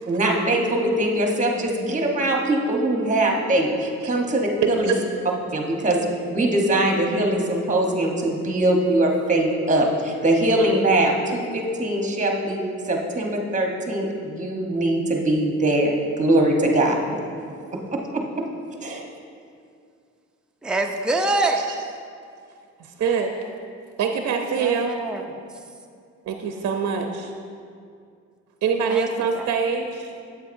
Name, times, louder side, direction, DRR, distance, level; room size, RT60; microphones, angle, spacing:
voice 1, 0.1-4.9 5.5-6.0 6.3-12.6 12.9-15.9 16.2-17.0 17.7-18.2 18.8-19.1, right 1 dB, 25° right, 1 dB, 1.1 m, -22 dB
voice 2, 20.6-21.7 24.6-25.2 28.9-29.1 29.3-29.5, right 2 dB, 5° right, 2 dB, 0.5 m, -24 dB
voice 3, 22.8-23.3 24.0-24.9 26.2-27.3 28.6-29.9, right 6 dB, 60° right, 4 dB, 0.6 m, -24 dB
8.3 x 7.6 x 2.6 m, 2.3 s
cardioid pair, 90°, 30 cm